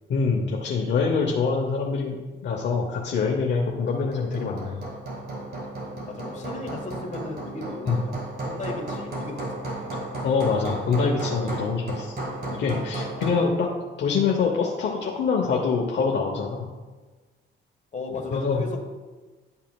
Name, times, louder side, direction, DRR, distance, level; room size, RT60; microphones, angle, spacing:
voice 1, 0.1-4.8 7.9-8.0 10.2-12.2 12.5-13.7 14.0-16.7 18.3-18.6, left 5 dB, 65° left, 0 dB, 0.8 m, -25 dB
Hammer, 3.9-13.5, right 2 dB, 55° right, 1.9 m, -34 dB
voice 2, 6.1-8.1 8.4-9.9 13.7-13.8 17.9-18.8, left 3 dB, 35° left, 1 dB, 1.4 m, -36 dB
10.5 x 5.6 x 2.3 m, 1.3 s
cardioid pair, 90°, 20 cm